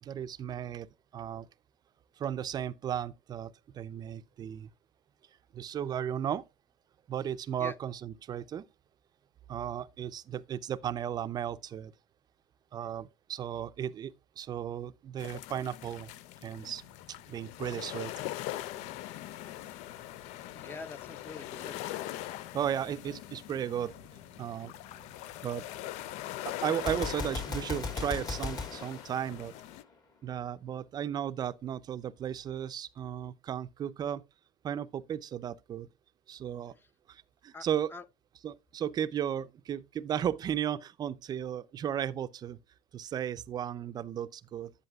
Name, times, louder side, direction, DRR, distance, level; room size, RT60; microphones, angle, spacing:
voice 1, 0.0-0.9 1.1-1.5 2.2-4.7 5.5-6.4 7.1-8.6 9.5-11.9 12.7-16.1 16.4-16.8 17.3-18.1 22.3-24.0 24.4-25.1 25.4-25.6 26.4-29.5 30.2-34.2 34.6-35.9 36.3-36.7 37.1-37.9 38.4-42.6 42.9-44.7, right 9 dB, 35° right, 0.5 m, -35 dB
sound 1, 15.2-29.8, left 15 dB, 70° left, 0.4 m, -42 dB
Motorcycle / Idling, 16.5-27.3, equal, 90° left, 4.5 m, -61 dB
voice 2, 20.5-21.8 37.5-38.0 43.0-43.1, left 3 dB, 20° left, 0.6 m, -45 dB
Gunshot gunfire, 26.7-29.9, left 4 dB, 35° left, 1.6 m, -37 dB
11.0 x 8.1 x 2.3 m
cardioid pair, 125°, 12 cm